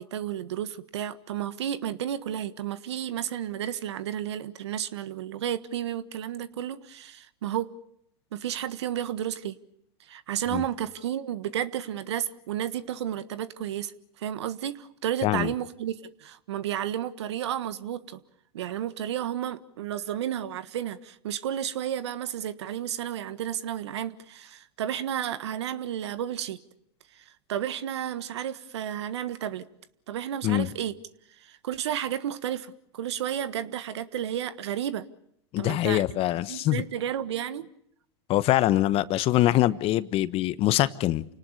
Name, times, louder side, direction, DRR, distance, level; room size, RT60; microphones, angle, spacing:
voice 1, 0.0-7.7 8.3-9.6 10.1-18.2 18.5-26.6 27.1-27.2 27.5-29.6 30.1-31.0 31.4-35.1 35.6-36.0 36.5-37.7, right 10 dB, 80° right, 1.5 m, -32 dB
voice 2, 35.5-36.8 38.3-41.2, left 15 dB, 40° left, 1.2 m, -24 dB
29.0 x 19.0 x 6.7 m
hypercardioid pair, 110°, 14 cm